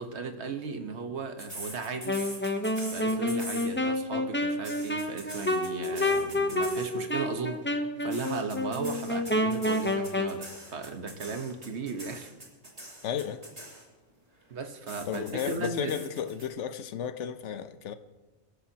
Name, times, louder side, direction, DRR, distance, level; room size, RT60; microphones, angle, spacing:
voice 1, 0.0-2.2 2.9-7.6 8.0-12.3 14.5-15.9, right 4 dB, 65° right, 1.5 m, -36 dB
sound 1, 1.4-4.0 4.4-7.1 8.1-14.1 14.9-16.5, right 1 dB, 30° right, 3.0 m, -43 dB
Wind instrument woodwind instrument, 2.0-10.4, left 1 dB, 10° left, 0.7 m, -29 dB
voice 2, 13.0-13.4 15.1-17.9, left 8 dB, 75° left, 1.1 m, -33 dB
25.0 x 13.5 x 2.9 m
omnidirectional pair, 1.2 m